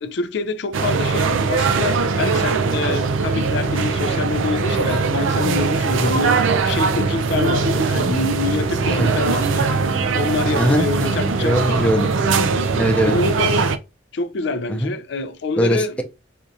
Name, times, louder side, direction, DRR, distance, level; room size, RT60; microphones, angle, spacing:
voice 1, 0.0-9.8 10.1-11.6 12.9-13.6 14.1-16.0, left 3 dB, 60° left, 0.4 m, -26 dB
sound 1, 0.7-13.8, right 4 dB, 85° right, 0.4 m, -20 dB
voice 2, 10.6-12.1 12.7-13.2 14.7-14.9 15.6-16.0, equal, 5° left, 0.5 m, -21 dB
4.3 x 2.4 x 2.6 m
head